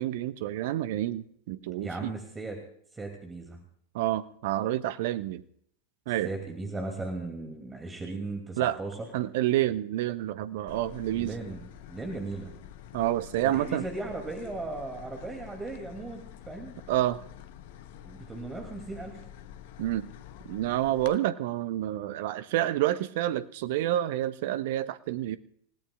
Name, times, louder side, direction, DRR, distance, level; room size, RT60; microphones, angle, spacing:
voice 1, 0.0-2.1 3.9-5.4 6.1-6.3 8.6-8.8 9.1-11.3 12.9-13.8 16.9-17.2 19.8-20.1 20.4-25.4, right 13 dB, 50° right, 15 dB, 0.7 m, -28 dB
voice 2, 1.8-2.6 2.9-3.6 6.2-9.0 11.1-12.5 13.4-16.7 17.9-19.2, right 2 dB, 15° right, 2 dB, 2.7 m, -37 dB
sound 1, 10.7-21.1, left 10 dB, 50° left, 0.9 m, -47 dB
28.5 x 17.0 x 2.4 m, 0.67 s
figure-of-eight pair, 90°, 0 cm